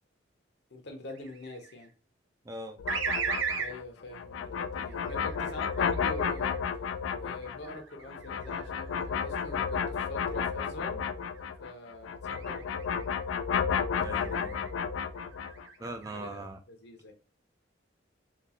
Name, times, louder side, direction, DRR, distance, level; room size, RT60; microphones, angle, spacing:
voice 1, 0.7-1.9 3.5-6.6 7.2-11.1 11.6-13.1 16.1-17.1, left 1 dB, 60° left, 0.7 m, -44 dB
sound 1, 1.1-1.8 2.9-3.8 4.7-6.6 7.3-10.6 11.0-11.4 12.3-13.2 14.0-14.7 15.2-16.1, right 6 dB, 90° right, 0.5 m, -38 dB
voice 2, 2.5-2.8 14.0-14.6 15.8-16.6, right 2 dB, 20° right, 0.3 m, -41 dB
sound 2, 2.8-11.7 12.0-15.7, left 6 dB, 90° left, 0.3 m, -32 dB
3.7 x 2.3 x 2.8 m
head